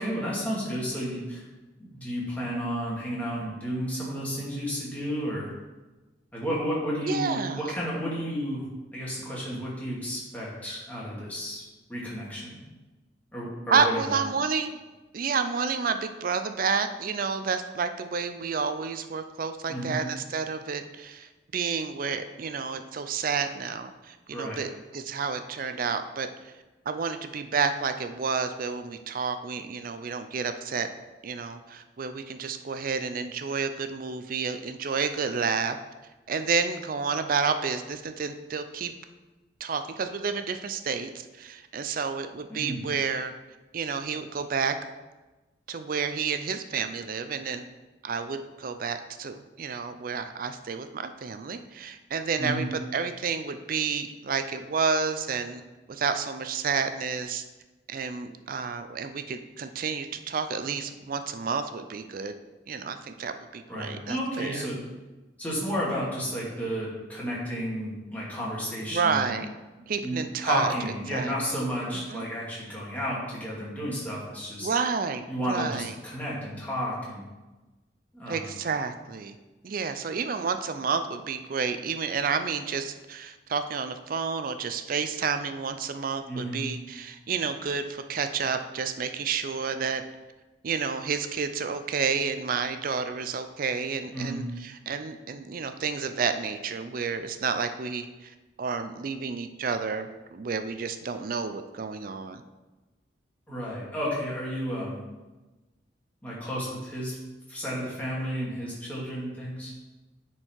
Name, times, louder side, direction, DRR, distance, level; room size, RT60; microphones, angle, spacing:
voice 1, 0.0-1.4 1.8-5.5 6.3-8.7 8.9-11.6 11.9-12.6 13.3-14.2 19.7-20.0 24.3-24.6 42.5-42.8 52.4-52.7 63.7-64.8 65.4-69.3 70.0-74.7 75.3-77.2 78.1-78.5 86.3-86.6 94.1-94.4 103.5-105.0 106.2-107.2 107.5-109.7, equal, 10° left, -6 dB, 2.3 m, -32 dB
voice 2, 7.0-7.7 13.7-14.8 15.1-26.5 26.9-30.9 31.2-35.8 36.3-38.9 39.6-43.3 43.7-44.7 45.7-47.6 48.0-55.6 55.9-57.4 57.9-62.3 62.7-64.6 68.9-69.5 69.9-70.7 71.1-71.3 71.9-72.3 74.6-75.9 78.3-79.3 79.6-90.0 90.6-98.3 98.6-102.4, right 5 dB, 50° right, 9 dB, 0.4 m, -30 dB
9.9 x 4.5 x 4.5 m, 1.1 s
head